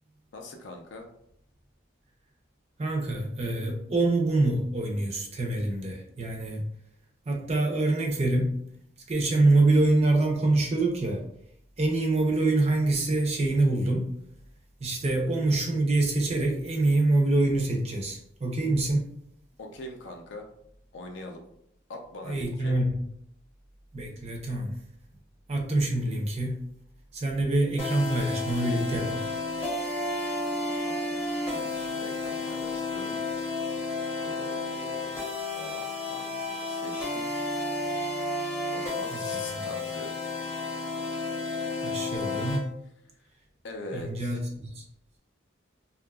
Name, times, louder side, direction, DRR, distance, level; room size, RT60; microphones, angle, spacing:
voice 1, 0.3-1.1 15.0-15.1 19.6-20.5 20.9-21.4 21.9-22.7 30.8-31.2 31.5-33.2 34.2-35.2 35.5-37.5 38.7-40.1 43.6-44.4, left 2 dB, 65° left, 3 dB, 0.4 m, -42 dB
voice 2, 2.8-6.6 7.3-8.6 9.1-11.2 11.8-14.1 14.8-19.1 22.3-23.0 23.9-24.7 25.5-26.6 27.1-29.3 39.1-39.7 41.8-42.7 43.9-44.8, right 2 dB, 30° right, 1 dB, 0.4 m, -25 dB
sound 1, 27.8-42.6, left 2 dB, 15° left, 0.6 m, -32 dB
2.7 x 2.3 x 2.2 m, 0.71 s
head